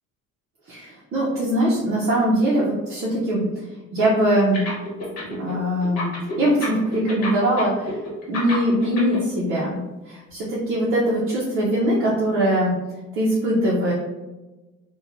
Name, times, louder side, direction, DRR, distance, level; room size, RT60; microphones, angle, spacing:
voice 1, 0.7-3.7 3.9-4.7 5.4-8.0 8.3-12.7 13.1-13.9, right 1 dB, 45° right, -6 dB, 0.6 m, -22 dB
sound 1, 4.5-5.5 5.8-9.2, left 3 dB, 55° left, 1.1 m, -30 dB
3.0 x 2.2 x 2.4 m, 1.1 s
cardioid pair, 165°, 31 cm